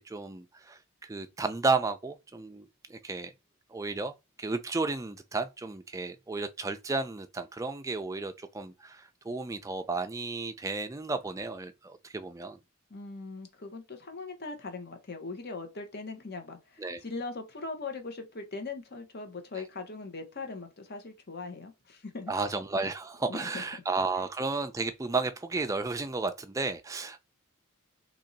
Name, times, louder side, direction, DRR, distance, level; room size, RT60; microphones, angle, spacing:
voice 1, 0.0-3.3 3.7-12.6 16.8-17.0 22.3-27.2, right 3 dB, 15° right, 0.3 m, -33 dB
voice 2, 12.9-22.3 23.3-23.6, left 3 dB, 45° left, 0.9 m, -40 dB
3.0 x 2.7 x 3.9 m
head